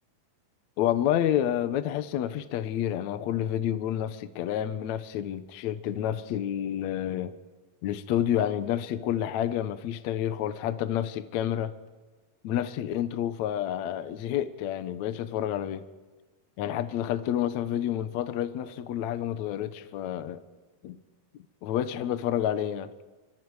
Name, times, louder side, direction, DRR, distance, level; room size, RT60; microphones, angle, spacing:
voice 1, 0.8-7.4 7.8-11.7 12.4-15.8 16.6-20.4 20.8-21.0 21.6-22.9, left 11 dB, 70° left, 1.8 m, -29 dB
28.0 x 24.5 x 4.8 m
omnidirectional pair, 4.4 m